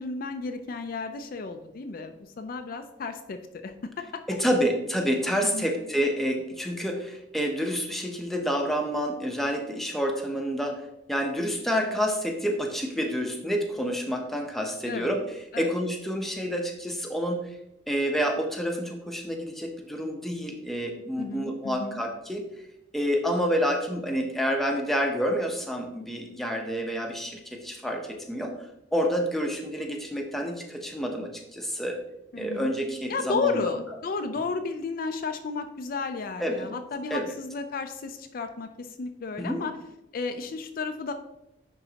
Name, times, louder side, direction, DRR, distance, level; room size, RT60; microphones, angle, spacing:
voice 1, 0.0-4.2 5.4-5.7 14.9-15.1 15.5-15.7 21.2-22.0 32.3-32.7 33.1-39.7 40.1-41.1, left 4 dB, 50° left, 7 dB, 0.4 m, -33 dB
voice 2, 4.3-15.2 15.6-17.4 17.9-22.4 22.9-28.5 28.9-32.0 32.4-33.6 36.4-36.7 37.1-37.3 39.4-39.6, equal, ahead, 2 dB, 0.7 m, -28 dB
9.8 x 3.9 x 2.8 m, 0.87 s
head